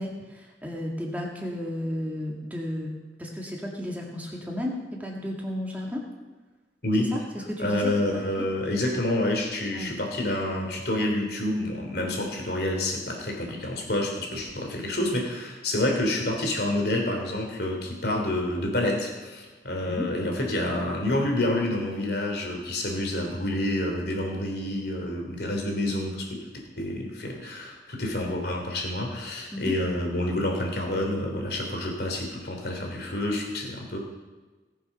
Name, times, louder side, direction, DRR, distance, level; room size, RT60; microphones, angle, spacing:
voice 1, 0.0-2.9 3.2-6.0 7.1-7.2 7.5-8.5 9.8-9.9 19.9-20.1 29.5-29.7, left 1 dB, 10° right, -2 dB, 2.1 m, -33 dB
voice 2, 7.6-26.4 26.8-34.0, left 1 dB, 60° left, 1 dB, 3.0 m, -28 dB
19.0 x 7.0 x 5.9 m, 1.2 s
head